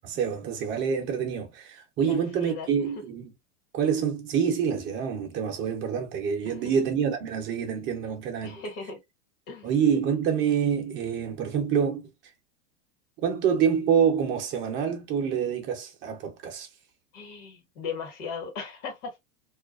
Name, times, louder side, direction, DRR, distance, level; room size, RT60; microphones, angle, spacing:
voice 1, 0.0-3.3 3.7-8.6 9.6-12.1 13.2-16.7, right 7 dB, 25° right, 0.6 m, -26 dB
voice 2, 2.0-2.7 6.5-6.6 8.4-9.0 9.5-9.7 17.1-19.2, left 5 dB, 55° left, 1.3 m, -37 dB
2.4 x 2.2 x 2.3 m
hypercardioid pair, 130°, 46 cm